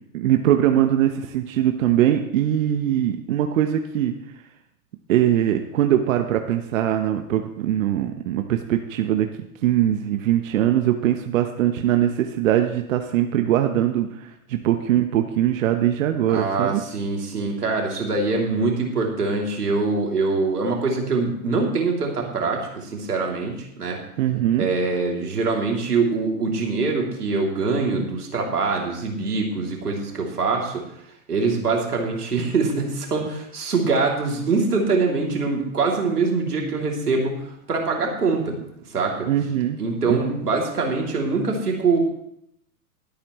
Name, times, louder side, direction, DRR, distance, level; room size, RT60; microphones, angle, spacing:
voice 1, 0.1-4.1 5.1-9.3 9.6-16.8 24.2-24.7 39.3-39.8 40.0-40.4, right 11 dB, 60° right, 6 dB, 1.1 m, -21 dB
voice 2, 16.3-24.0 24.6-30.8 31.3-38.6 38.9-39.3 39.8-42.0, right 4 dB, 85° right, 0 dB, 3.0 m, -24 dB
21.5 x 8.6 x 3.1 m, 0.75 s
hypercardioid pair, 110°, 45 cm